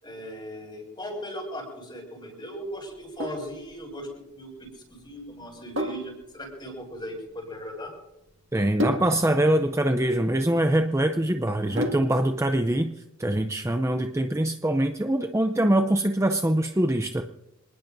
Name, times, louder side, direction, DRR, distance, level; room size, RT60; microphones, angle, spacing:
voice 1, 0.0-7.9, equal, 20° left, 1 dB, 6.3 m, -38 dB
Sink (filling or washing), 2.9-12.3, equal, 60° right, 2.0 m, -35 dB
voice 2, 8.5-12.9 13.2-17.2, right 1 dB, 15° right, 6 dB, 0.6 m, -23 dB
27.0 x 19.5 x 2.7 m, 0.94 s
head